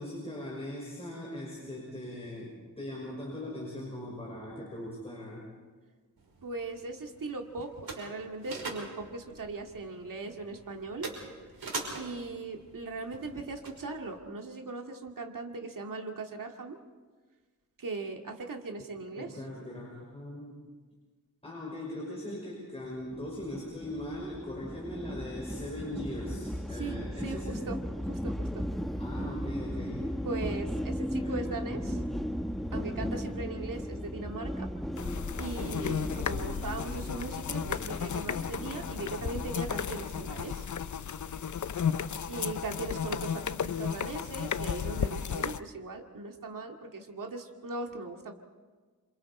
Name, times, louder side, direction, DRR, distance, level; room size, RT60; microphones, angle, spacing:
voice 1, 0.0-5.5 19.2-20.6 21.4-27.6 29.0-30.1 31.1-32.0, left 1 dB, 15° left, -4 dB, 5.9 m, -40 dB
sound 1, 6.2-14.2, right 3 dB, 85° right, 5.7 m, -44 dB
voice 2, 6.4-11.1 12.0-16.8 17.8-19.4 26.7-27.8 28.0-28.6 30.2-31.9 32.7-34.7 35.4-40.7 42.3-48.3, right 3 dB, 65° right, 3 dB, 2.2 m, -39 dB
sound 2, 23.1-40.5, equal, ahead, 1.2 m, -37 dB
sound 3, 35.0-45.6, left 7 dB, 55° left, 0.7 m, -34 dB
28.0 x 26.5 x 4.3 m, 1.4 s
wide cardioid pair, 90°, 36 cm